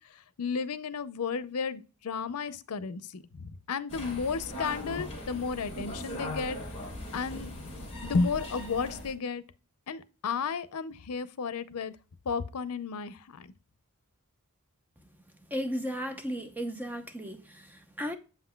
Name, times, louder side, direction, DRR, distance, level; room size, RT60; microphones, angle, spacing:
voice 1, 0.4-6.6 7.1-7.5 8.0-9.4 9.9-11.9 12.3-13.5, left 5 dB, 85° left, 0.6 m, -33 dB
sound 1, 3.9-9.1, left 1 dB, 30° left, 3.2 m, -39 dB
voice 2, 15.5-18.2, equal, 10° right, 0.7 m, -35 dB
7.6 x 5.8 x 2.2 m
head